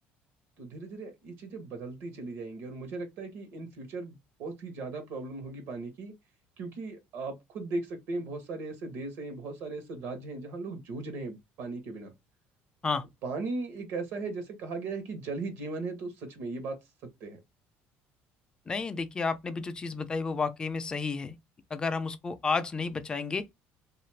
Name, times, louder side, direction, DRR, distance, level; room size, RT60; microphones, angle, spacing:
voice 1, 0.6-6.1 6.6-12.1 13.2-16.8 17.0-17.4, right 3 dB, 70° right, 0.9 m, -37 dB
voice 2, 18.7-21.4 21.7-23.4, left 4 dB, 20° left, 0.4 m, -31 dB
2.5 x 2.4 x 3.2 m
cardioid pair, 135°, 4 cm